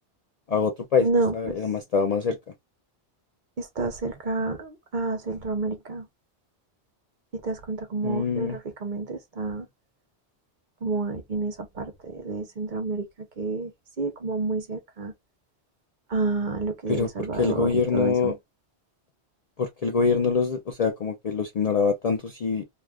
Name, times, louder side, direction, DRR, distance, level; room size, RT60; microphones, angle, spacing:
voice 1, 0.5-1.1 1.3-2.4 8.0-8.6 16.9-17.1 17.4-18.3 19.6-22.6, left 5 dB, 55° left, 0.4 m, -24 dB
voice 2, 1.0-1.6 3.6-6.1 7.3-9.7 10.8-13.7 14.0-15.1 16.1-18.4, right 3 dB, 50° right, 0.8 m, -29 dB
2.4 x 2.4 x 3.3 m
omnidirectional pair, 1.1 m